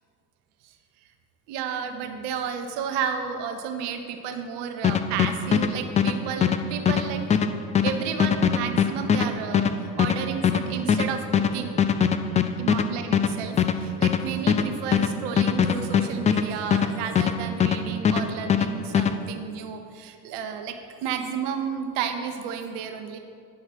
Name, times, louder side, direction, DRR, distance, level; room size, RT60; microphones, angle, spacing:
voice 1, 1.5-7.2 7.8-11.8 12.6-23.2, right 7 dB, 60° right, 6 dB, 1.1 m, -32 dB
sound 1, 4.8-17.8 18.0-19.1, left 7 dB, 15° left, 0.3 m, -22 dB
9.7 x 5.6 x 6.0 m, 2.3 s
figure-of-eight pair, 60°, 47 cm